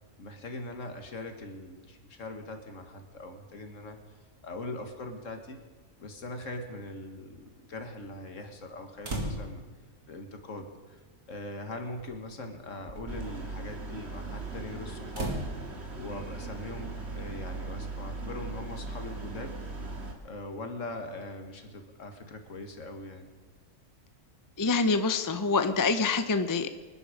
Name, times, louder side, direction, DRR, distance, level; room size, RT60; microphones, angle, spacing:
voice 1, 0.2-4.0 4.4-5.6 6.0-9.6 10.1-11.0 11.3-15.3 16.0-19.9 20.2-23.3, left 2 dB, 65° left, 5 dB, 1.9 m, -41 dB
sound 1, 9.0-9.7 10.9-11.0 12.0-12.2 12.7-13.3 15.1-15.5, right 1 dB, 75° right, 2.5 m, -35 dB
sound 2, 13.1-20.1, right 3 dB, 50° right, 2.2 m, -39 dB
voice 2, 24.6-26.7, left 4 dB, 25° left, 9 dB, 0.5 m, -26 dB
25.0 x 9.9 x 5.1 m, 1.3 s
omnidirectional pair, 1.4 m